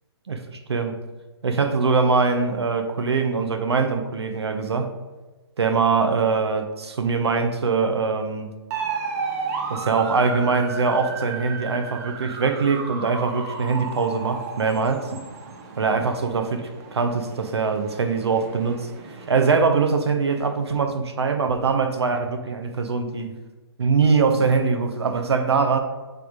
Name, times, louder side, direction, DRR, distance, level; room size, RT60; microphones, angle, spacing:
voice 1, 0.3-1.0 1.4-4.9 5.6-8.5 9.7-15.2 15.8-23.3 23.8-25.8, right 4 dB, 70° right, 0.8 m, -22 dB
sound 1, 8.7-19.4, right 5 dB, 35° right, 0.8 m, -34 dB
7.7 x 3.5 x 3.7 m
figure-of-eight pair, 135°, 14 cm